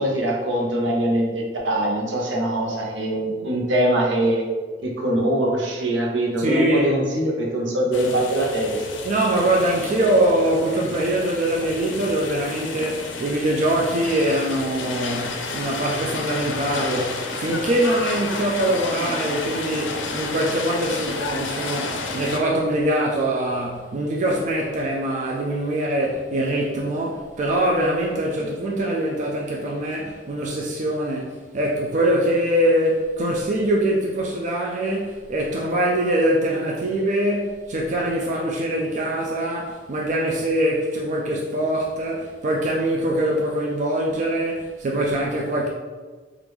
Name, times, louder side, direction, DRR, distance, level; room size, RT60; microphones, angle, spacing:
voice 1, 0.0-4.4 4.8-8.8, right 1 dB, 80° right, -2 dB, 0.7 m, -23 dB
voice 2, 6.4-7.0 9.0-45.7, right 1 dB, 40° right, -2 dB, 0.3 m, -23 dB
sound 1, 7.9-22.4, left 3 dB, 90° left, 0.4 m, -31 dB
3.4 x 2.4 x 3.1 m, 1.4 s
head